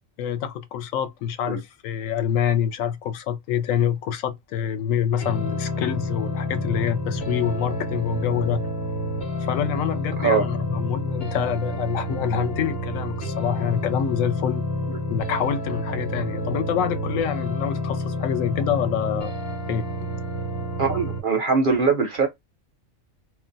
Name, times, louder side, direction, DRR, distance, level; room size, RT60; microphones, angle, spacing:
voice 1, 0.2-8.6 9.4-14.6 15.1-19.3 19.7-19.8, left 9 dB, 75° left, 0.9 m, -26 dB
sound 1, 5.2-21.2, left 1 dB, 40° left, 0.9 m, -29 dB
voice 2, 20.8-22.3, right 4 dB, 55° right, 0.6 m, -21 dB
2.4 x 2.1 x 3.8 m
omnidirectional pair, 1.4 m